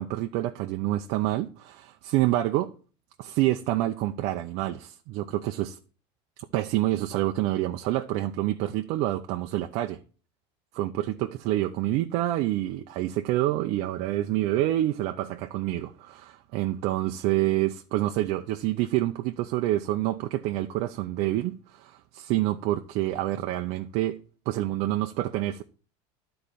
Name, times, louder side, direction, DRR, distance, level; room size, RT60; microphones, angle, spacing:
voice 1, 0.0-2.7 3.2-5.8 6.5-10.0 10.7-24.2 24.5-25.6, right 15 dB, 55° right, 0.6 m, -27 dB
11.5 x 4.4 x 6.8 m
cardioid pair, 160°, 13 cm